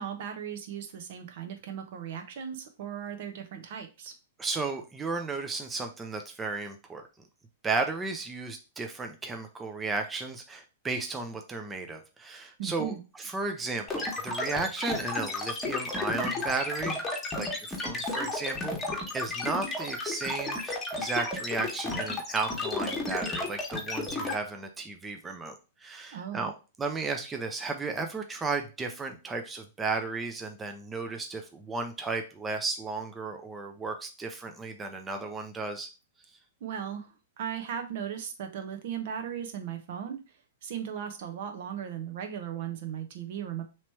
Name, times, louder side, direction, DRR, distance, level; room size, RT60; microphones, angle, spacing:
voice 1, 0.0-4.1 12.6-13.0 26.1-26.5 36.6-37.1 37.4-40.2 40.6-43.6, right 8 dB, 60° right, 6 dB, 0.8 m, -37 dB
voice 2, 4.4-7.0 7.6-17.0 17.4-18.8 19.1-25.5 25.8-26.5 26.8-35.9, right 3 dB, 15° right, 4 dB, 0.5 m, -34 dB
sound 1, 13.9-24.3, left 2 dB, 15° left, 1.2 m, -32 dB
3.0 x 3.0 x 4.5 m, 0.31 s
hypercardioid pair, 120°, 0 cm